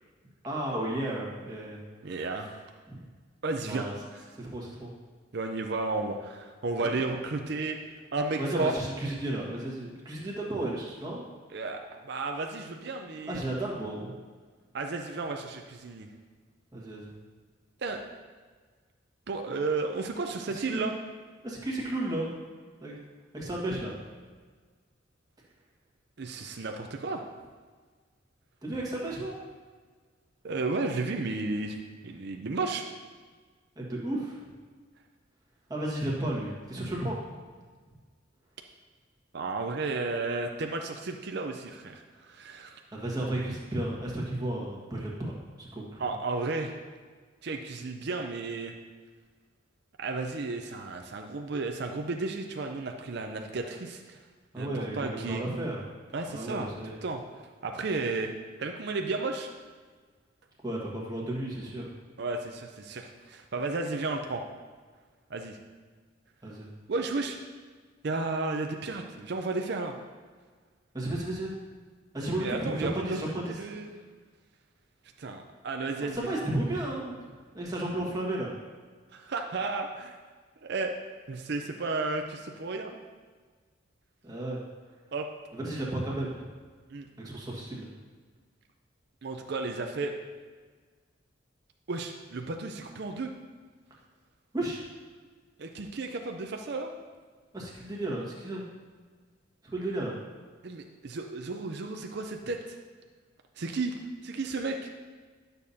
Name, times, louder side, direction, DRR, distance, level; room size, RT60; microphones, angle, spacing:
voice 1, 0.4-1.8 2.0-2.3 2.9-3.1 3.6-3.9 4.3-4.9 8.4-11.2 13.3-14.1 16.7-17.1 20.5-20.9 21.4-22.3 22.8-22.9 23.3-24.0 28.6-29.4 33.7-34.5 35.7-37.2 42.9-46.0 54.5-55.8 56.3-56.9 60.6-61.9 66.4-66.7 70.9-71.5 72.1-73.6 76.0-78.5 84.2-84.6 85.5-86.3 87.2-87.9 94.5-94.9 97.5-98.6 99.6-100.2, right 1 dB, 20° right, -4 dB, 1.5 m, -33 dB
voice 2, 2.0-2.5 3.4-3.9 4.1-4.2 5.3-7.8 8.1-8.7 11.5-13.4 14.7-16.1 17.8-18.0 19.3-20.9 26.2-27.3 30.4-31.8 32.0-32.9 39.3-42.8 46.0-46.8 47.4-48.7 50.0-54.2 54.6-55.4 56.1-56.7 57.0-58.3 58.6-59.5 62.2-64.4 65.3-65.6 66.9-67.4 68.0-69.9 72.3-73.9 75.2-76.3 79.1-80.2 80.6-80.9 81.3-83.0 85.1-85.3 86.9-87.1 89.2-90.1 91.9-93.3 95.6-96.9 100.6-102.8 103.6-103.9 104.2-104.9, right 3 dB, 55° right, 3 dB, 0.5 m, -33 dB
11.5 x 6.7 x 2.8 m, 1.5 s
head